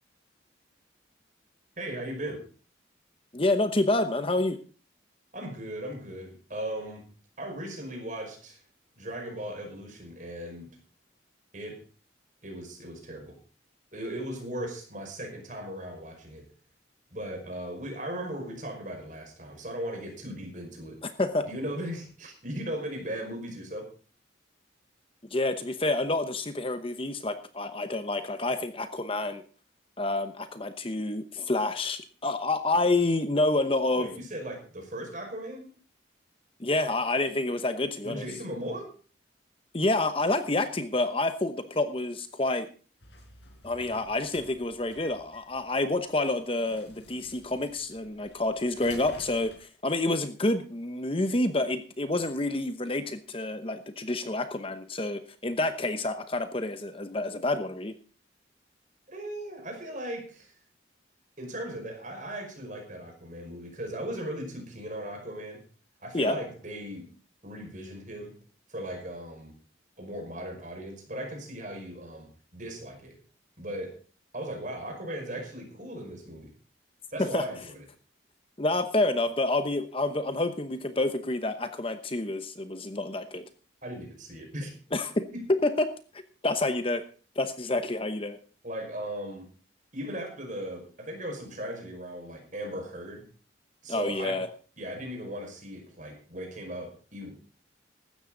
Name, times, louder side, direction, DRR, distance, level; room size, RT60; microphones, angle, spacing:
voice 1, 1.8-2.4 5.3-7.1 7.4-8.6 9.0-10.7 11.5-11.8 12.4-13.4 13.9-16.4 17.1-23.9 34.0-35.7 38.0-38.9 59.1-60.5 61.4-65.6 66.0-67.1 67.4-68.3 68.7-69.5 70.0-73.2 73.6-74.0 74.3-76.5 77.1-77.9 83.8-84.7 85.3-85.5 88.6-89.5 89.9-93.2 93.8-94.4 94.8-97.3, right 1 dB, 40° right, 2 dB, 5.3 m, -38 dB
voice 2, 3.3-4.6 21.2-21.5 25.3-29.4 30.0-34.1 36.6-38.3 39.7-42.7 43.6-57.9 66.1-66.4 77.2-77.4 78.6-83.4 84.9-85.3 85.6-85.7 86.4-87.0 87.4-88.4 93.9-94.5, left 2 dB, 30° left, 10 dB, 0.9 m, -28 dB
sound 1, 43.0-49.6, left 2 dB, 65° left, 4.4 m, -51 dB
15.5 x 12.5 x 3.9 m, 0.38 s
head